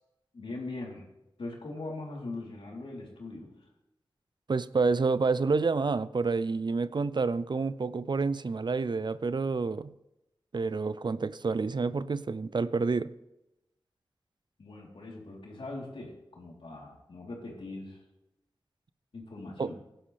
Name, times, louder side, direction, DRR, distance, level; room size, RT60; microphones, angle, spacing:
voice 1, 0.3-1.1 1.4-3.5 14.6-18.0 19.1-19.7, left 2 dB, 80° left, 3.7 m, -41 dB
voice 2, 4.5-9.9 10.5-13.1 19.6-19.7, right 4 dB, 55° right, 0.5 m, -28 dB
16.5 x 11.5 x 3.4 m
cardioid pair, 45°, 9 cm